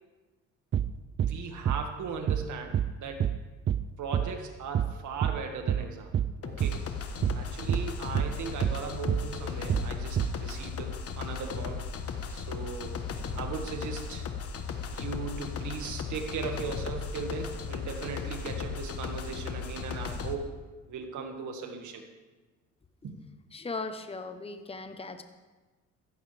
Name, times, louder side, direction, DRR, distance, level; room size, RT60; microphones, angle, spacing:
sound 1, 0.7-0.9 1.2-1.4 1.7-1.9 2.3-2.5 2.7-2.9 3.2-3.4 3.7-3.9 4.1-4.3 4.7-4.9 5.2-5.4 5.7-5.9 6.1-6.3 6.6-6.8 7.2-7.4 7.7-7.9 8.2-8.4 8.6-8.8 9.1-9.3 9.7-9.9 10.2-10.4, right 9 dB, 40° right, 0.5 m, -27 dB
voice 1, 1.2-3.3 4.0-6.1 6.4-6.8 7.3-11.8 12.3-13.0 13.4-14.3 14.9-20.5 20.9-22.0 23.0-23.2, right 5 dB, 75° right, 4 dB, 2.0 m, -38 dB
sound 2, 6.4-20.3, left 6 dB, 50° left, 1.3 m, -36 dB
voice 2, 23.5-25.2, left 3 dB, 20° left, 8 dB, 1.0 m, -38 dB
15.0 x 14.5 x 3.5 m, 1.2 s
cardioid pair, 90°, 30 cm